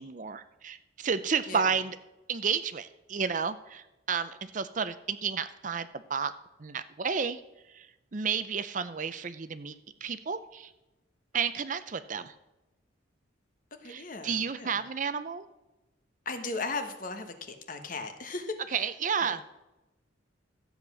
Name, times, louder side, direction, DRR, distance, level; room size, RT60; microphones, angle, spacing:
voice 1, 0.0-2.0 2.3-6.3 6.6-7.4 7.7-9.8 10.0-10.7 11.3-12.3 13.9-15.5 18.7-19.4, right 6 dB, 40° right, 12 dB, 0.5 m, -31 dB
voice 2, 13.8-14.8 16.2-18.6 19.2-19.3, left 3 dB, 40° left, 6 dB, 1.2 m, -37 dB
13.0 x 8.0 x 6.1 m, 0.98 s
head